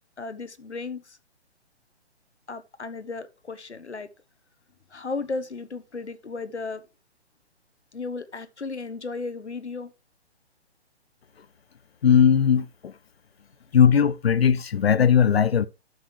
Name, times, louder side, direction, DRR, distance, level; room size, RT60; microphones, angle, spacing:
voice 1, 0.2-1.2 2.5-4.1 4.9-6.8 7.9-9.9, left 4 dB, 90° left, 1.4 m, -34 dB
voice 2, 12.0-12.9 13.7-15.7, left 7 dB, 65° left, 1.0 m, -18 dB
12.5 x 6.2 x 3.3 m
figure-of-eight pair, 140°, 33 cm